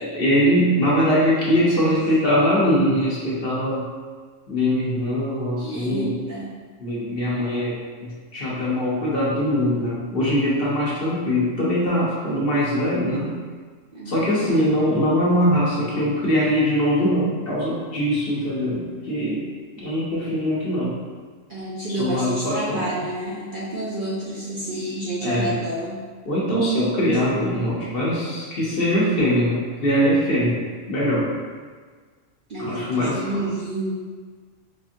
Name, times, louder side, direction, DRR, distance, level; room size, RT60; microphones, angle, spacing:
voice 1, 0.0-3.8 4.5-6.1 6.8-13.3 14.1-19.4 19.7-21.0 22.0-22.8 24.7-25.0 25.2-25.5 26.2-30.6 30.9-31.3 32.6-33.4, equal, 50° left, -7 dB, 0.9 m, -22 dB
voice 2, 5.6-6.5 13.9-14.7 21.5-26.0 32.5-33.9, right 1 dB, 55° right, -8 dB, 0.6 m, -29 dB
4.2 x 2.5 x 2.6 m, 1.5 s
omnidirectional pair, 1.3 m